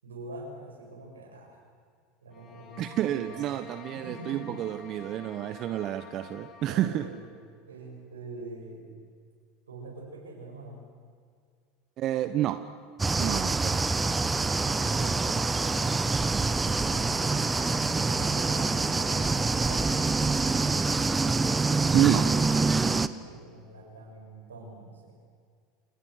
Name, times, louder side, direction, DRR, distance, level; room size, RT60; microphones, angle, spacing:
voice 1, 0.0-1.6 2.2-3.4 3.9-4.8 6.7-7.3 7.7-8.9 9.7-10.9 14.7-15.6 16.5-20.1 23.0-25.2, right 2 dB, 85° right, 7.7 m, -45 dB
sound 1, 2.3-7.2, left 5 dB, 45° left, 6.4 m, -49 dB
voice 2, 2.8-7.1 12.0-12.7 13.2-13.8 21.9-22.4, right 12 dB, 50° right, 1.2 m, -29 dB
sound 2, 13.0-23.1, right 3 dB, 15° right, 1.3 m, -26 dB
30.0 x 28.5 x 6.7 m
hypercardioid pair, 80°, 0 cm